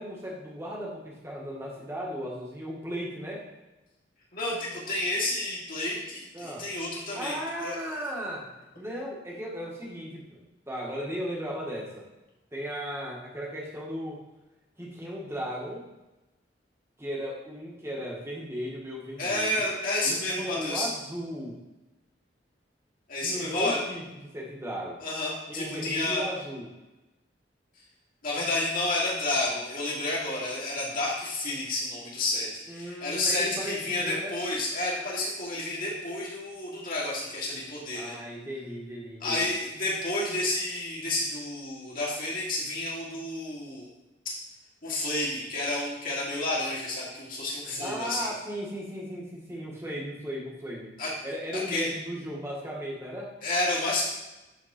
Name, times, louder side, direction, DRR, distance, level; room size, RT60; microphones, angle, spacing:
voice 1, 0.0-3.4 6.3-6.7 7.1-12.0 12.5-14.2 14.8-15.9 17.0-19.7 20.0-21.6 23.2-25.0 25.5-26.7 32.7-34.3 37.9-39.5 47.7-50.9 51.2-53.3, equal, 15° right, -3 dB, 1.8 m, -36 dB
voice 2, 4.3-7.8 19.2-20.9 23.1-23.8 25.0-26.3 28.2-38.1 39.2-43.9 44.8-48.3 51.0-51.1 51.7-51.9 53.4-54.0, left 2 dB, 50° left, -5 dB, 2.6 m, -30 dB
11.0 x 4.2 x 4.4 m, 1.0 s
head